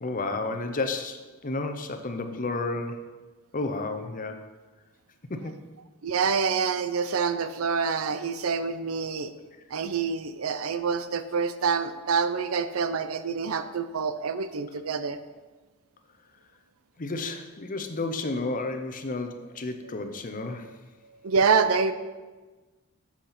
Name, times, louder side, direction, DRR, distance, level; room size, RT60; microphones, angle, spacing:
voice 1, 0.0-3.1 3.5-4.4 5.3-5.5 17.0-20.8, left 3 dB, 40° left, 7 dB, 0.7 m, -32 dB
voice 2, 6.0-9.3 9.7-15.2 20.6-20.8 21.2-21.9, right 5 dB, 75° right, 11 dB, 0.5 m, -26 dB
7.4 x 6.7 x 5.7 m, 1.3 s
head